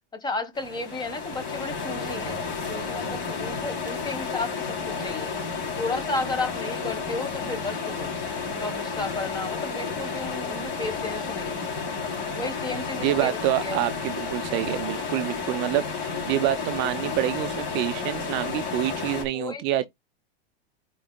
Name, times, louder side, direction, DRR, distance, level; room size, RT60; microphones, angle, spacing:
voice 1, 0.1-2.4 2.7-8.1 8.4-11.7 12.3-13.8 19.3-19.9, left 3 dB, 15° left, 1.3 m, -33 dB
sound 1, 0.5-19.2, left 5 dB, 40° left, 3.2 m, -31 dB
voice 2, 13.0-19.8, right 14 dB, 40° right, 0.5 m, -27 dB
12.5 x 4.5 x 2.2 m
supercardioid pair, 140°, 30 cm